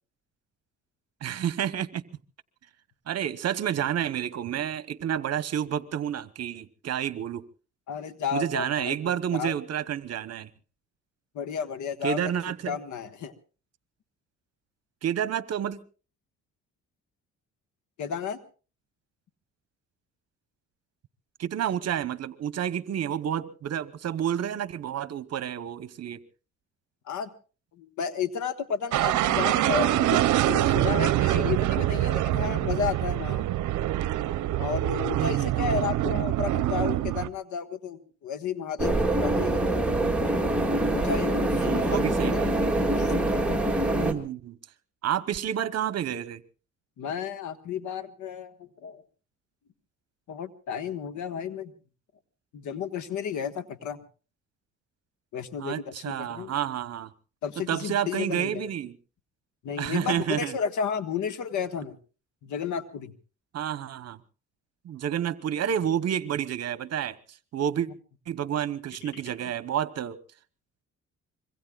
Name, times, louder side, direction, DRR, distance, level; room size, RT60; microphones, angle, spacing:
voice 1, 1.2-2.0 3.1-7.4 8.3-10.5 12.0-12.8 15.0-15.8 21.4-26.2 35.1-35.7 41.5-42.7 44.0-44.6 45.0-46.4 55.6-57.1 57.7-58.9 59.8-60.6 63.5-64.2 64.8-67.2 67.5-67.9 68.3-70.2, right 9 dB, 55° right, 1.0 m, -30 dB
voice 2, 7.9-9.5 11.3-12.3 12.7-13.3 18.0-18.4 27.1-27.3 27.7-33.5 34.6-39.9 40.9-42.4 43.0-43.6 47.0-49.0 50.3-51.7 52.5-54.0 55.3-56.5 57.4-58.7 59.6-62.0 62.4-63.1 69.0-69.5, left 7 dB, 75° left, 1.5 m, -33 dB
sound 1, 28.9-37.3, right 14 dB, 75° right, 0.7 m, -25 dB
sound 2, 38.8-44.1, right 1 dB, 5° right, 2.2 m, -25 dB
25.5 x 23.0 x 2.4 m
cardioid pair, 90°, 30 cm